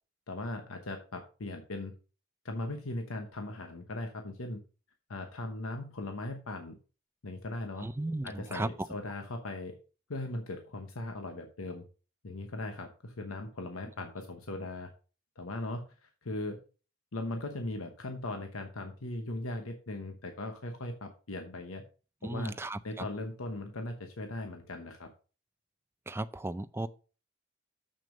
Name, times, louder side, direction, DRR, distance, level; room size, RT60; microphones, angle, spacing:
voice 1, 0.3-1.9 2.4-4.6 5.1-6.8 7.2-7.9 8.2-9.8 10.1-11.8 12.2-14.9 15.4-16.6 17.1-21.8 22.2-22.6 22.8-25.1, left 2 dB, 85° left, 1.0 m, -39 dB
voice 2, 7.8-8.7 22.2-23.0 26.1-26.9, right 2 dB, 10° right, 0.4 m, -35 dB
6.8 x 6.3 x 5.1 m
head